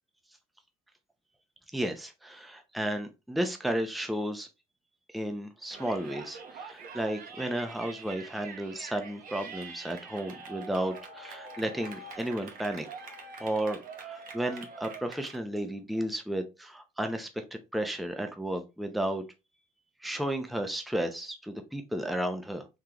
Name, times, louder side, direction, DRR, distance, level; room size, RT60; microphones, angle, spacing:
voice 1, 1.7-4.5 5.1-13.1 13.4-17.4 17.7-19.2 20.0-22.7, right 1 dB, ahead, 0.6 m, -33 dB
Yell, 5.7-15.4, right 4 dB, 55° right, 1.0 m, -45 dB
3.8 x 3.1 x 2.9 m
cardioid pair, 110°, 17 cm